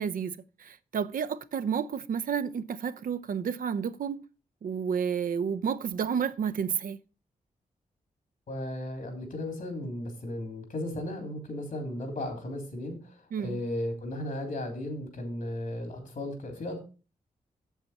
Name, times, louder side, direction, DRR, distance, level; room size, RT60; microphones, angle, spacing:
voice 1, 0.0-4.2 4.6-7.0 13.3-13.6, right 7 dB, 65° right, 0.6 m, -31 dB
voice 2, 8.5-16.8, left 1 dB, 70° left, 3.1 m, -35 dB
8.1 x 7.1 x 4.3 m
cardioid pair, 50°, 15 cm